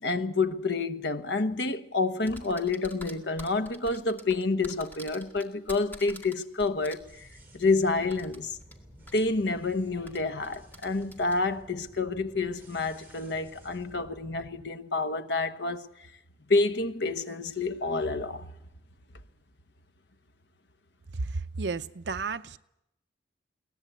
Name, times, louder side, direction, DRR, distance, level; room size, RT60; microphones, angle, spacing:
voice 1, 0.0-7.3 7.5-8.6 9.1-15.9 16.5-18.5, left 3 dB, 75° left, 1.2 m, -28 dB
sound 1, 2.3-7.0 8.1-8.7 9.1-9.2 10.1-11.4, equal, 10° left, 2.0 m, -46 dB
sound 2, 7.0-14.6, right 1 dB, 10° right, 5.8 m, -53 dB
voice 2, 21.1-22.6, right 4 dB, 75° right, 0.7 m, -32 dB
22.5 x 18.0 x 8.1 m
head